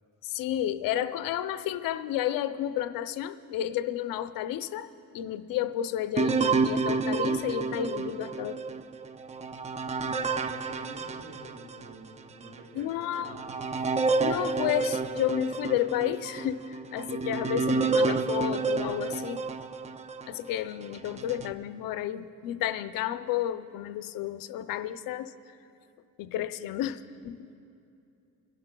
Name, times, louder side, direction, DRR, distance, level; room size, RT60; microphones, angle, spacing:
voice 1, 0.2-4.9 5.1-8.6 12.8-13.4 14.2-19.4 20.3-25.3 26.2-27.5, left 12 dB, 85° left, 11 dB, 0.6 m, -31 dB
sound 1, 6.2-11.9 12.4-12.5 13.1-20.3 20.9-21.5, right 4 dB, 20° right, 0.4 m, -30 dB
voice 2, 10.0-13.6, right 2 dB, 90° right, 0 dB, 2.7 m, -47 dB
29.0 x 11.5 x 2.3 m, 2.6 s
cardioid pair, 105°, 33 cm